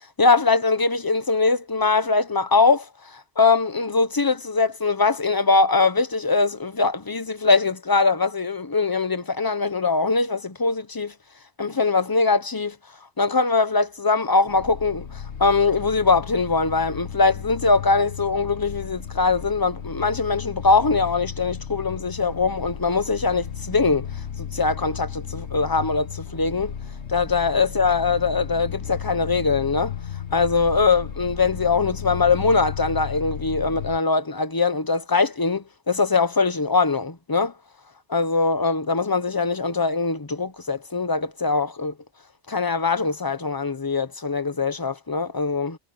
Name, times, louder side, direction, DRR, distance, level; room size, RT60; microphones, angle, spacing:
voice 1, 0.2-11.1 11.6-12.7 13.2-24.1 24.4-26.7 27.1-29.9 30.3-37.5 38.1-41.9 42.5-45.8, left 4 dB, 20° left, 0.9 m, -22 dB
sound 1, 14.5-34.0, left 8 dB, 70° left, 1.4 m, -34 dB
omnidirectional pair, 1.2 m